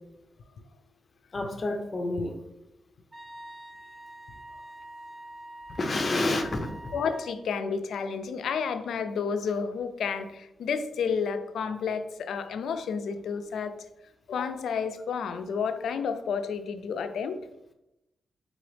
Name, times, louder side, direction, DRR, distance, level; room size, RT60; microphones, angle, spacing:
voice 1, 1.3-2.4 5.7-6.9, left 2 dB, 35° left, 5 dB, 0.6 m, -29 dB
Wind instrument woodwind instrument, 3.1-7.4, right 1 dB, 35° right, 0.5 m, -45 dB
voice 2, 6.9-13.8 14.3-17.4, left 6 dB, 85° left, 9 dB, 0.3 m, -31 dB
3.9 x 3.8 x 3.3 m, 0.90 s
wide cardioid pair, 120°, 0 cm